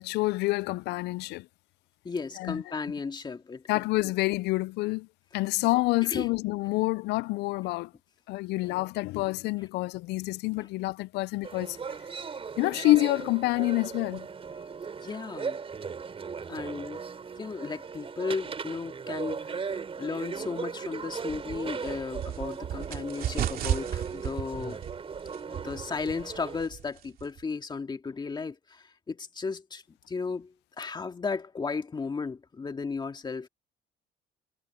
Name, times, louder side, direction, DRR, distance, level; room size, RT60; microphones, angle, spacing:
voice 1, 0.0-1.5 2.4-2.6 3.7-5.1 5.3-7.9 8.3-11.8 12.6-14.3, left 20 dB, 80° left, 0.4 m, -27 dB
voice 2, 2.0-3.7 6.1-6.3 12.7-12.8 15.0-15.6 16.5-17.0 17.4-24.8 25.5-33.5, left 4 dB, 25° left, 2.2 m, -35 dB
sound 1, 11.4-26.7, right 5 dB, 35° right, 5.2 m, -38 dB
sound 2, 21.3-27.4, right 10 dB, 60° right, 2.7 m, -35 dB
cardioid pair, 110°, 17 cm